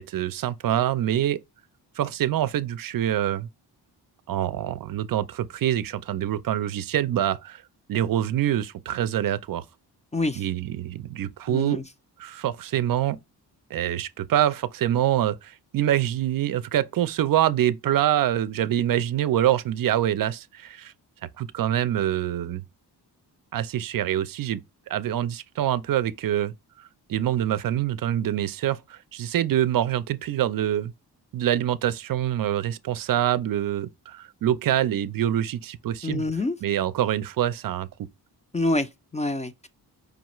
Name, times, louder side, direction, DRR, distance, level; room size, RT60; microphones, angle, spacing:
voice 1, 0.0-1.4 2.0-3.5 4.3-7.6 7.9-9.6 10.4-11.8 12.2-13.2 13.7-20.9 21.4-22.6 23.5-24.6 24.9-26.5 27.1-30.9 31.3-36.2 36.6-37.9, right 11 dB, 55° right, 0.5 m, -25 dB
voice 2, 10.1-10.4 11.5-11.8 36.0-36.6 38.5-39.7, left 2 dB, 20° left, 0.4 m, -27 dB
5.0 x 2.3 x 2.9 m
cardioid pair, 100°, 41 cm